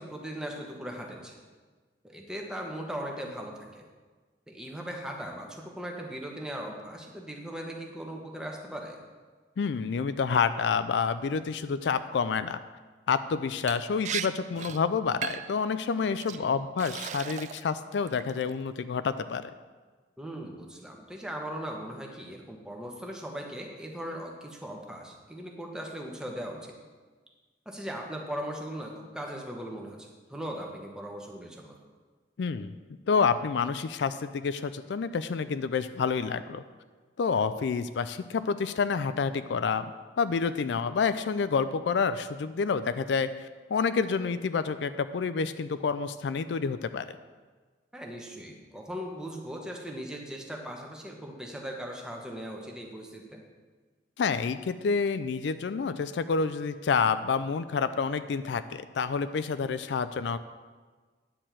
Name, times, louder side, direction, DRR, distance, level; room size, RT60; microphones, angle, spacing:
voice 1, 0.0-1.4 2.0-3.8 4.5-9.0 16.3-16.5 20.2-26.7 27.6-31.7 47.9-53.4, equal, 5° right, 0 dB, 1.1 m, -39 dB
voice 2, 9.6-12.6 13.1-19.5 32.4-32.7 33.1-36.6 37.2-39.9 40.2-43.3 43.7-47.0 54.2-60.4, left 5 dB, 75° left, 12 dB, 0.4 m, -28 dB
Liquid, 13.7-13.8 14.0-14.3 14.6-14.8 15.2-15.6 16.2-16.4 16.8-17.7 18.1-18.5, right 9 dB, 40° right, 0.3 m, -36 dB
10.0 x 4.3 x 7.5 m, 1.4 s
head